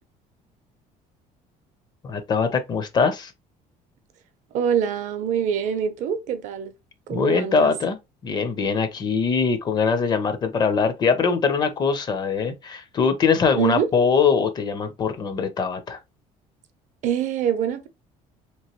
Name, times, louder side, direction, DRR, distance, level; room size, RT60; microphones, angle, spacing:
voice 1, 2.0-3.3 7.1-8.0 8.2-16.0, left 5 dB, 30° left, 0.5 m, -22 dB
voice 2, 4.5-6.7 7.1-7.7 13.6-13.9 17.0-17.9, right 8 dB, 55° right, 0.6 m, -24 dB
2.9 x 2.9 x 2.9 m
cardioid pair, 160°, 15 cm